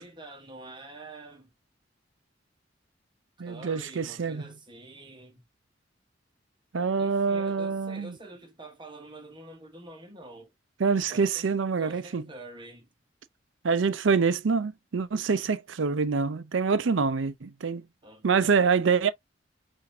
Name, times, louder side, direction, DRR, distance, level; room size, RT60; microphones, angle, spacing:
voice 1, 0.0-1.5 3.4-5.4 7.0-10.5 11.1-12.9 18.0-18.5, right 2 dB, 25° right, 1.2 m, -46 dB
voice 2, 3.4-4.4 6.7-8.2 10.8-12.2 13.6-17.9 18.2-19.1, right 5 dB, 85° right, 0.5 m, -26 dB
5.8 x 2.7 x 2.7 m
head